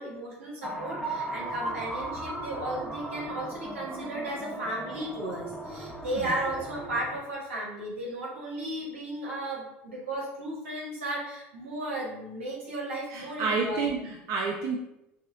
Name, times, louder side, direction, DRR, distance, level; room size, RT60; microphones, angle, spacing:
voice 1, 0.0-13.9, right 1 dB, 85° right, -4 dB, 1.2 m, -35 dB
sound 1, 0.6-7.2, right 1 dB, ahead, 0.7 m, -37 dB
voice 2, 13.1-14.8, right 4 dB, 55° right, 1 dB, 0.4 m, -30 dB
6.0 x 2.1 x 2.4 m, 0.87 s
hypercardioid pair, 75°, 7 cm